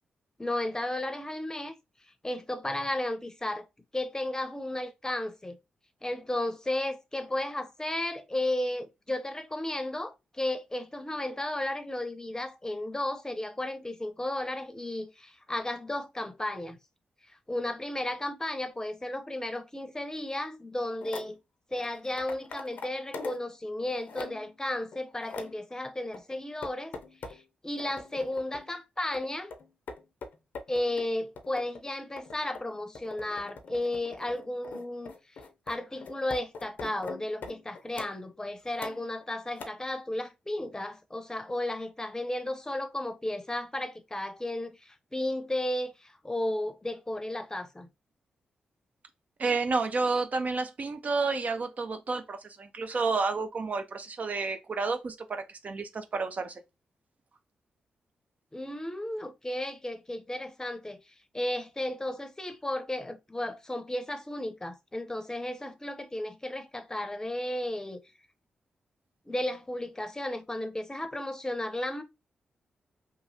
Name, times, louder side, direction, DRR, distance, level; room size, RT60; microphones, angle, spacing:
voice 1, 0.4-1.7 2.2-3.7 3.9-5.6 6.0-16.8 17.5-21.4 21.7-27.0 27.3-29.5 30.7-35.1 35.7-47.9 58.5-61.0 61.3-68.0 69.3-72.0, left 1 dB, 20° left, 0.6 m, -34 dB
sound 1, 21.0-21.3 21.7-23.5 23.8-24.5 24.9-25.6 26.1-27.4 27.8-28.7 29.1-38.2 38.7-39.2 39.6-39.7, left 4 dB, 70° left, 0.5 m, -43 dB
voice 2, 49.4-56.6, right 4 dB, 50° right, 0.4 m, -30 dB
3.0 x 2.3 x 2.7 m
supercardioid pair, 45°, 3 cm